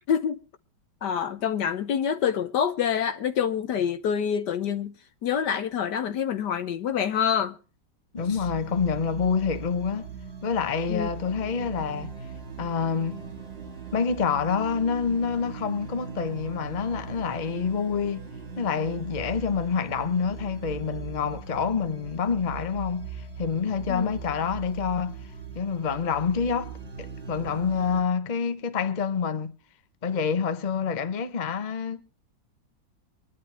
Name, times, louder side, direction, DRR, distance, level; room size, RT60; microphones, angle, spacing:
voice 1, 0.1-0.4 1.0-4.9 5.2-7.6 10.9-11.1 23.9-24.1, left 8 dB, 65° left, 1.3 m, -26 dB
voice 2, 8.1-10.1 10.4-12.1 12.6-13.2 13.9-18.3 18.6-25.2 25.5-29.5 30.0-32.0, left 6 dB, 30° left, 0.9 m, -27 dB
sound 1, 8.2-28.0, right 6 dB, 30° right, 2.3 m, -39 dB
23.5 x 11.0 x 3.3 m
omnidirectional pair, 2.2 m